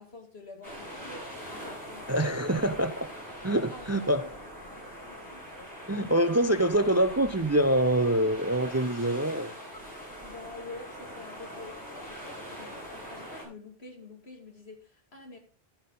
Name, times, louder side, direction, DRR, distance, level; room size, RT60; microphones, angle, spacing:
voice 1, 0.0-2.2 3.7-4.5 5.0-5.5 10.2-15.4, left 2 dB, 80° left, 2.7 m, -47 dB
sound 1, 0.6-13.4, equal, 20° left, 7.0 m, -43 dB
voice 2, 2.1-3.1 3.4-4.2 5.9-9.5, right 1 dB, 20° right, 0.5 m, -25 dB
12.0 x 8.8 x 3.9 m
omnidirectional pair, 1.1 m